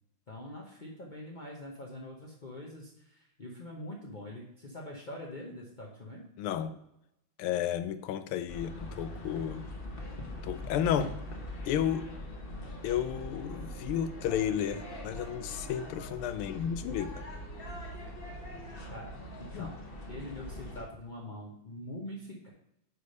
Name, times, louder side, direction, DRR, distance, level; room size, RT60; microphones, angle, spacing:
voice 1, 0.3-6.2 18.9-19.7 20.1-22.5, left 1 dB, 55° left, -2 dB, 0.5 m, -44 dB
voice 2, 6.4-6.7 7.4-9.6 10.4-11.1 11.7-12.1 12.8-17.2 19.5-19.7, left 9 dB, 85° left, 12 dB, 1.5 m, -32 dB
sound 1, 8.5-20.8, left 1 dB, 35° left, 0.9 m, -42 dB
9.4 x 3.3 x 5.3 m, 0.82 s
omnidirectional pair, 2.3 m